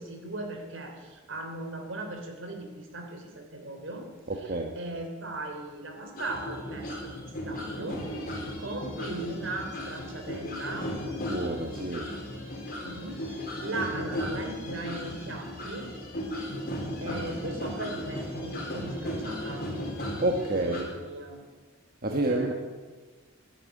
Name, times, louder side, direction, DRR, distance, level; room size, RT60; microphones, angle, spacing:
voice 1, 0.0-4.1 4.4-8.0 8.6-10.9 12.8-15.9 17.0-19.7 20.6-21.4 22.1-22.5, right 2 dB, 70° right, 3 dB, 3.3 m, -38 dB
voice 2, 4.3-4.7 11.3-12.1 20.2-20.9 22.0-22.5, right 2 dB, 45° right, 2 dB, 1.2 m, -28 dB
sound 1, 6.2-20.8, equal, 45° left, 4.0 m, -36 dB
14.5 x 12.0 x 8.3 m, 1.4 s
head